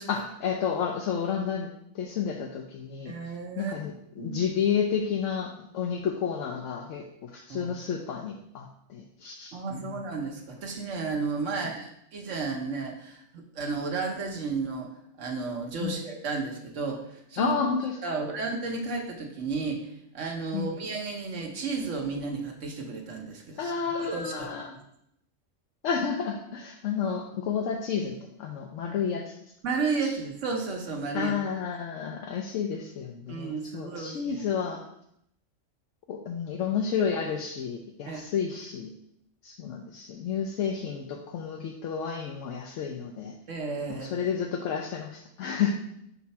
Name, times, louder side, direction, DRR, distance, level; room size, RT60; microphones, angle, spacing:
voice 1, 0.1-1.7 1.9-3.1 3.6-10.0 11.5-11.7 15.8-16.0 17.4-18.0 20.5-20.8 23.6-24.7 25.8-29.4 30.0-30.1 31.1-34.8 36.1-38.9 39.4-43.3 43.9-45.7, left 7 dB, 80° left, 2 dB, 1.0 m, -31 dB
voice 2, 3.0-3.7 4.2-4.4 7.5-7.7 9.5-14.9 15.2-17.6 18.0-23.7 24.0-24.5 29.6-31.3 33.3-34.5 38.1-38.2 43.5-44.3, right 4 dB, 75° right, 1 dB, 1.2 m, -33 dB
5.6 x 4.2 x 4.1 m, 0.74 s
omnidirectional pair, 1.3 m